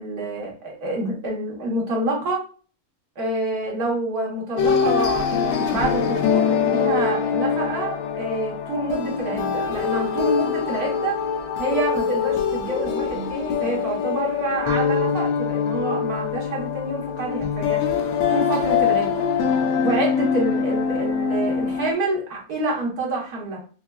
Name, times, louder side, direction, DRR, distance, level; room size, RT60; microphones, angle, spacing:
voice 1, 0.0-2.4 3.2-11.2 11.6-17.8 18.3-19.3 19.8-23.6, right 2 dB, 80° right, -2 dB, 1.7 m, -27 dB
sound 1, 4.6-21.9, left 6 dB, 85° left, 1.1 m, -23 dB
5.4 x 2.3 x 2.2 m, 0.38 s
omnidirectional pair, 1.6 m